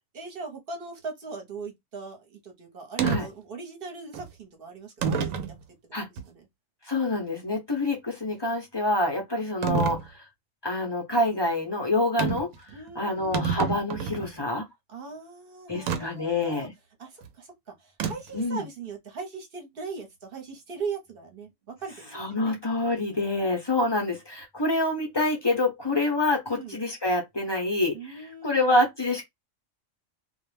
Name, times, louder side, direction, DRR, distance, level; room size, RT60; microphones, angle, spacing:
voice 1, 0.1-5.5 5.9-6.5 12.7-13.5 14.9-16.7 17.0-22.6 26.5-26.8 27.9-28.7, right 4 dB, 50° right, 1.0 m, -40 dB
sound 1, 3.0-3.2 4.1-4.3 5.0-5.5 6.2-6.3 9.6-10.0 12.2-12.5 12.9-13.0 13.2-14.3 15.9-16.0 18.0-18.4, right 6 dB, 90° right, 1.0 m, -27 dB
voice 2, 6.9-10.0 10.6-12.5 13.0-14.7 15.7-16.7 18.3-18.6 22.1-28.0 28.4-29.2, left 2 dB, 30° left, 0.6 m, -26 dB
2.4 x 2.2 x 3.1 m
omnidirectional pair, 1.3 m